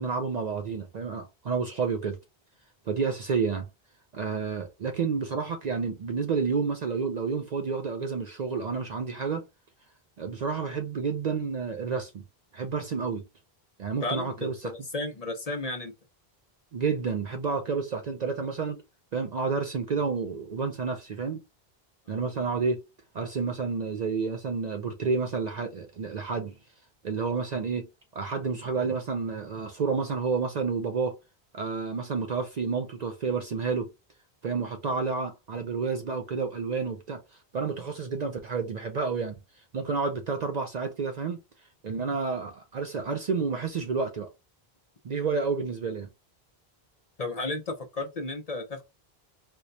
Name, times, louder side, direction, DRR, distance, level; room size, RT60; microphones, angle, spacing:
voice 1, 0.0-2.2 2.9-3.7 4.1-9.4 10.2-12.2 12.5-13.2 13.8-14.7 16.7-18.8 19.1-21.4 22.1-22.8 23.1-26.6 27.0-27.9 28.1-31.2 31.5-33.9 34.4-37.2 37.5-39.3 39.7-41.4 41.8-44.3 45.0-46.1, right 5 dB, 55° right, 0.5 m, -30 dB
voice 2, 14.0-15.9 47.2-48.8, left 2 dB, 45° left, 0.7 m, -33 dB
4.4 x 2.2 x 2.6 m
omnidirectional pair, 1.0 m